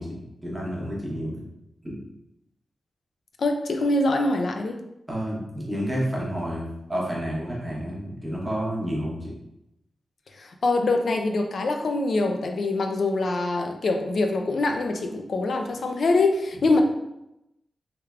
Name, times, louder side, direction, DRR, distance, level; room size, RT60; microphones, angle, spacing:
voice 1, 0.0-1.4 1.8-2.0 5.1-9.3, equal, 10° right, -5 dB, 0.9 m, -30 dB
voice 2, 3.4-4.7 10.4-16.8, left 2 dB, 60° left, 4 dB, 0.4 m, -24 dB
3.3 x 3.3 x 2.4 m, 0.87 s
wide cardioid pair, 150°, 0 cm